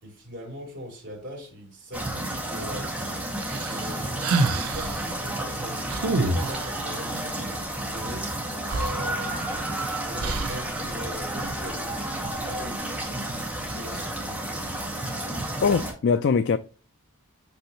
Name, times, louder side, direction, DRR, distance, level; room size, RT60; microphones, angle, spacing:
voice 1, 0.0-2.9 3.7-6.0 6.3-8.3 8.7-9.6 10.1-13.1 13.6-14.6, equal, 55° right, 3.3 m, -41 dB
sound 1, 1.9-15.9, right 1 dB, 5° right, 1.9 m, -31 dB
sound 2, 3.4-5.0 5.9-6.8 8.3-8.4 8.7-9.7 10.2-10.7, right 3 dB, 85° right, 0.6 m, -27 dB
voice 2, 15.6-16.6, left 5 dB, 50° left, 0.3 m, -22 dB
6.0 x 5.5 x 2.9 m
head